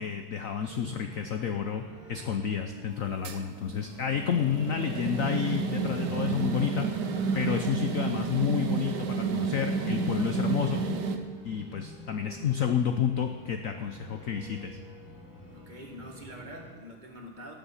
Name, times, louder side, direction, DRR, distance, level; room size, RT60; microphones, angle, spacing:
voice 1, 0.0-1.8 2.1-6.9 7.3-10.8 11.4-14.8, left 8 dB, 85° left, 6 dB, 0.7 m, -30 dB
sound 1, 0.7-16.7, right 2 dB, 5° right, 4.4 m, -47 dB
sound 2, 3.2-11.2, right 5 dB, 60° right, 1.3 m, -31 dB
voice 2, 15.5-17.5, equal, 25° right, 1 dB, 1.7 m, -45 dB
19.5 x 7.3 x 5.6 m, 1.3 s
omnidirectional pair, 2.3 m